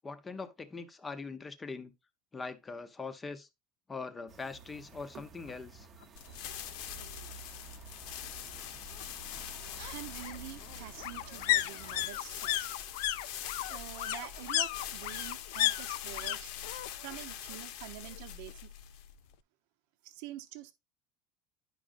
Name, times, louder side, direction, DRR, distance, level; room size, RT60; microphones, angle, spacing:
voice 1, 0.0-1.9 2.3-3.5 3.9-5.9, left 4 dB, 15° left, 0.7 m, -42 dB
sound 1, 4.3-12.1, right 6 dB, 25° right, 0.8 m, -52 dB
sound 2, 5.5-5.6 5.9-6.0 6.3-7.3 8.6-16.4 16.6-17.2 17.5-18.5 18.8-18.9, left 15 dB, 85° left, 0.4 m, -34 dB
sound 3, 6.1-19.3, left 10 dB, 65° left, 0.8 m, -44 dB
voice 2, 9.8-12.7 13.6-16.5 17.0-18.6 20.0-20.7, right 13 dB, 65° right, 0.8 m, -46 dB
11.0 x 5.0 x 2.5 m
cardioid pair, 165°, 0 cm